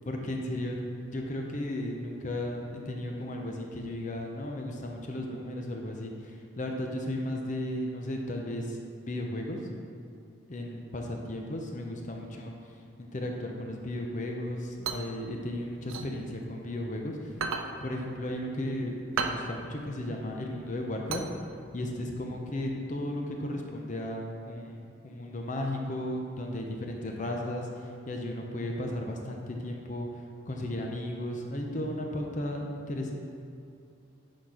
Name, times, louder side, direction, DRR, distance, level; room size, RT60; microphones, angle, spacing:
voice 1, 0.1-0.8 1.1-8.8 9.1-9.6 10.5-12.5 13.0-17.2 17.8-21.2 21.7-27.7 28.1-30.1 30.5-33.1, left 1 dB, 40° left, 1 dB, 0.7 m, -35 dB
sound 1, 14.5-16.9 17.3-21.9, right 5 dB, 90° right, 0.6 m, -35 dB
10.0 x 4.3 x 4.9 m, 2.6 s
head